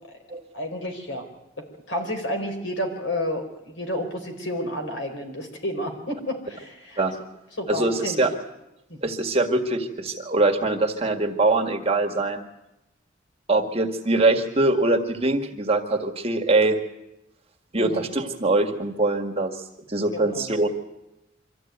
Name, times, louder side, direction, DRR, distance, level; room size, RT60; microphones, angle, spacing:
voice 1, 0.5-1.3 1.6-7.0 7.6-8.2 8.9-9.0 17.8-18.1 20.1-20.5, left 1 dB, 75° left, 4 dB, 4.5 m, -31 dB
voice 2, 7.7-8.3 9.0-12.4 13.5-16.8 17.7-19.6 19.9-20.7, right 2 dB, 30° right, 4 dB, 1.9 m, -23 dB
24.5 x 14.0 x 9.4 m, 0.93 s
head